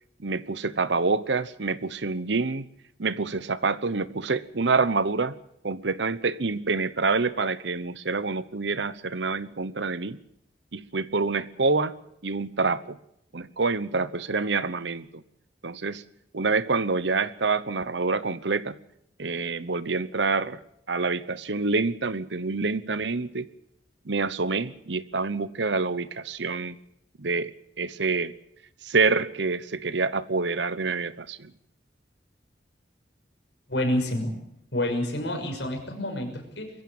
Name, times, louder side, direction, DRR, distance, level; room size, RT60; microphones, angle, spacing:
voice 1, 0.2-2.7 3.0-5.3 5.6-10.2 10.7-11.9 12.2-13.0 13.3-15.2 15.6-16.0 16.3-18.8 19.2-20.6 20.9-23.5 24.1-26.8 27.2-27.5 27.8-28.3 28.8-31.5, right 4 dB, 75° right, 1.0 m, -27 dB
voice 2, 33.7-34.3 34.7-36.7, left 1 dB, 70° left, 6.1 m, -28 dB
22.5 x 15.5 x 8.9 m
head